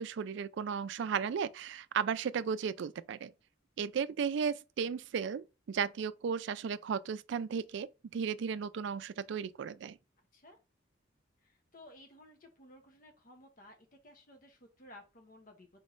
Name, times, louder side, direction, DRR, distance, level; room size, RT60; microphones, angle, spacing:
voice 1, 0.0-3.3 3.8-10.0, right 6 dB, 65° right, 0.3 m, -35 dB
voice 2, 11.4-15.8, left 1 dB, 45° left, 0.9 m, -56 dB
4.4 x 3.1 x 3.9 m
head